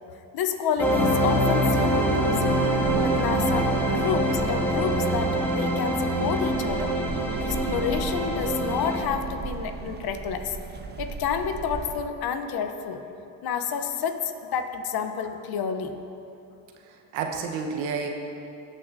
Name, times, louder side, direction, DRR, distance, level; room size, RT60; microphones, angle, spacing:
voice 1, 0.3-2.6 3.0-6.9 7.4-10.6 11.0-13.0 13.4-16.0, left 7 dB, 50° left, 7 dB, 0.8 m, -29 dB
sound 1, 0.8-9.0, right 1 dB, 5° left, 1.7 m, -24 dB
sound 2, 1.5-12.0, right 5 dB, 25° right, 0.4 m, -39 dB
voice 2, 16.8-18.1, right 5 dB, 75° right, 3 dB, 1.1 m, -30 dB
18.5 x 6.2 x 2.6 m, 2.8 s
supercardioid pair, 80°, 46 cm